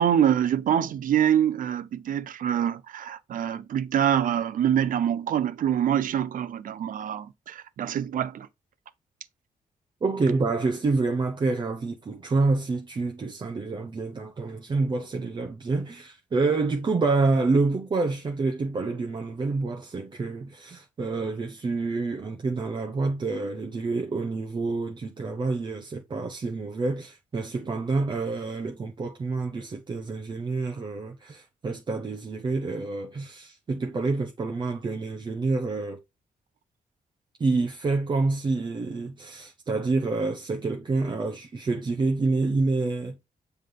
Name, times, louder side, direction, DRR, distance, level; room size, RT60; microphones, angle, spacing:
voice 1, 0.0-8.5, right 9 dB, 70° right, 0.8 m, -25 dB
voice 2, 10.0-36.0 37.4-43.2, right 3 dB, 30° right, 0.9 m, -27 dB
7.7 x 3.4 x 3.8 m
wide cardioid pair, 145°, 14 cm